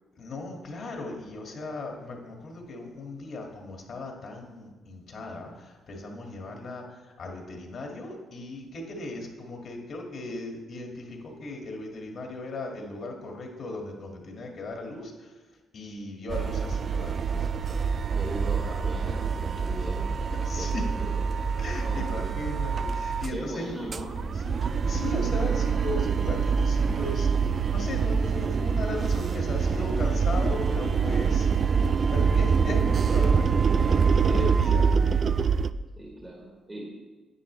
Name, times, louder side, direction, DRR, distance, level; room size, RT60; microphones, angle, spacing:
voice 1, 0.2-15.4 15.7-17.5 20.4-20.9 21.6-24.5 24.9-33.6 33.9-34.9, left 2 dB, 55° left, 1 dB, 1.9 m, -37 dB
sound 1, 16.3-23.4 23.7-35.7, right 6 dB, 45° right, 0.3 m, -25 dB
voice 2, 18.0-21.3 21.7-22.3 23.3-24.1 34.3-34.6 36.0-36.9, right 1 dB, 20° right, -3 dB, 1.9 m, -39 dB
10.0 x 9.1 x 3.2 m, 1.3 s
cardioid pair, 90°, 0 cm